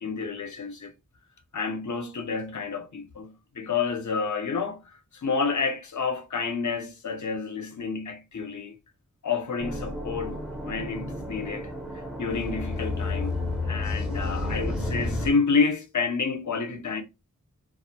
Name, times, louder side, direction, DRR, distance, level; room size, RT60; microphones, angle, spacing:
voice 1, 0.0-0.9 1.5-4.9 5.2-8.8 9.2-11.7 12.2-13.3 13.7-17.0, left 5 dB, 65° left, 0.6 m, -29 dB
sound 1, 9.6-15.3, left 2 dB, ahead, 0.6 m, -31 dB
2.3 x 2.0 x 2.7 m
wide cardioid pair, 45°, 32 cm